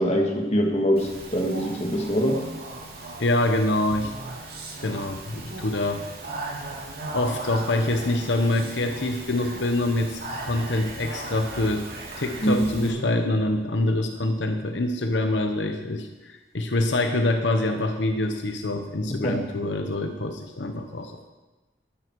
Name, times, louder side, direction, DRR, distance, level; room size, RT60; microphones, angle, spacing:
voice 1, 0.0-2.4 12.4-13.0 19.1-19.4, equal, 35° left, 0 dB, 1.9 m, -24 dB
Speech, 1.0-12.9, right 2 dB, 60° right, 2.9 m, -37 dB
voice 2, 3.2-4.1 4.8-6.0 7.1-11.9 12.2-21.3, left 2 dB, 80° left, 5 dB, 1.0 m, -25 dB
12.5 x 11.5 x 4.7 m, 1.2 s
head